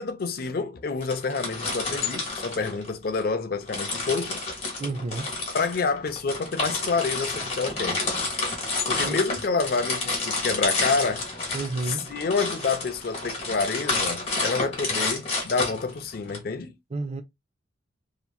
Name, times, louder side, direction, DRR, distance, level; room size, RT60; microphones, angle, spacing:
voice 1, 0.0-4.4 5.5-8.1 8.9-11.3 11.8-16.7, left 4 dB, 50° left, 0.4 m, -28 dB
sound 1, 1.0-3.3 3.7-16.4, left 3 dB, 30° left, 1.1 m, -29 dB
voice 2, 4.8-5.3 8.9-9.2 11.5-12.2 16.9-17.2, right 3 dB, 35° right, 0.4 m, -31 dB
2.9 x 2.4 x 2.2 m
head